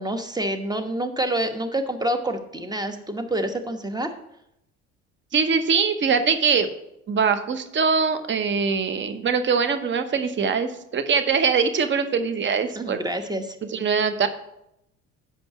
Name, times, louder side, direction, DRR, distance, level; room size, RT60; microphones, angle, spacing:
voice 1, 0.0-4.1 12.7-13.6, right 1 dB, 10° right, 7 dB, 1.1 m, -27 dB
voice 2, 5.3-6.7 7.1-13.0 13.6-14.3, right 5 dB, 35° right, 9 dB, 0.9 m, -22 dB
6.7 x 5.2 x 5.9 m, 0.81 s
hypercardioid pair, 65°, 34 cm